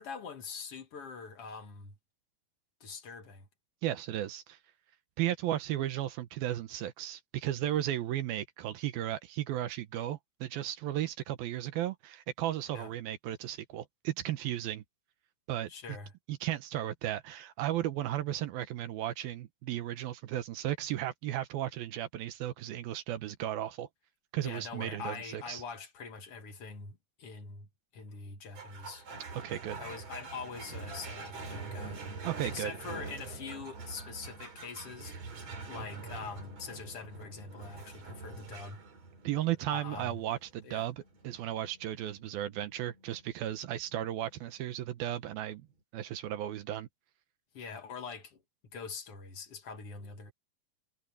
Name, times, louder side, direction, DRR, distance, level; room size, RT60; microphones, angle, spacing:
voice 1, 0.0-2.0 2.8-3.5 12.7-12.9 15.7-16.1 24.4-27.7 27.9-29.1 29.8-35.2 35.7-38.8 39.7-40.2 40.6-40.9 47.5-48.4 48.7-50.3, left 5 dB, 50° left, 2.0 m, -44 dB
voice 2, 3.8-4.6 5.2-14.8 15.5-15.7 16.3-23.9 24.3-25.6 29.3-29.8 32.2-32.7 39.2-45.7 45.9-46.9, right 13 dB, 75° right, 2.7 m, -35 dB
sound 1, 28.5-45.3, right 4 dB, 45° right, 4.7 m, -45 dB
omnidirectional pair, 4.6 m